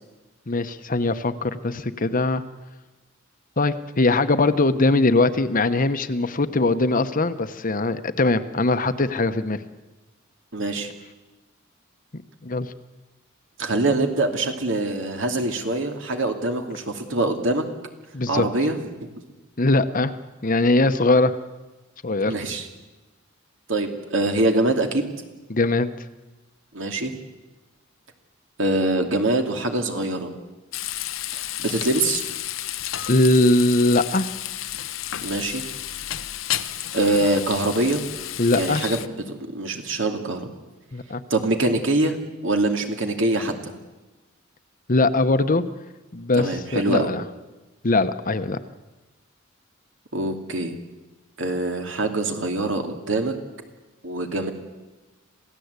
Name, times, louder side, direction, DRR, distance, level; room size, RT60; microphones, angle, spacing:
voice 1, 0.5-2.4 3.6-9.6 12.4-12.7 18.1-18.5 19.6-20.1 20.4-21.3 22.0-22.3 25.5-25.9 33.1-34.3 38.4-38.8 40.9-41.2 44.9-45.6 46.1-47.2 47.8-48.6, left 2 dB, 45° left, 10 dB, 1.0 m, -21 dB
voice 2, 10.5-10.9 13.6-17.6 18.3-18.8 22.2-22.7 23.7-25.1 26.7-27.2 28.6-30.3 31.3-32.2 35.2-35.6 36.9-38.0 38.5-40.5 41.3-42.2 42.4-43.7 46.3-47.1 50.1-50.7 51.4-53.3 54.0-54.5, right 2 dB, 65° right, 4 dB, 2.6 m, -24 dB
Frying (food), 30.7-39.1, left 12 dB, 75° left, 0.9 m, -31 dB
27.5 x 16.5 x 8.2 m, 1.1 s
head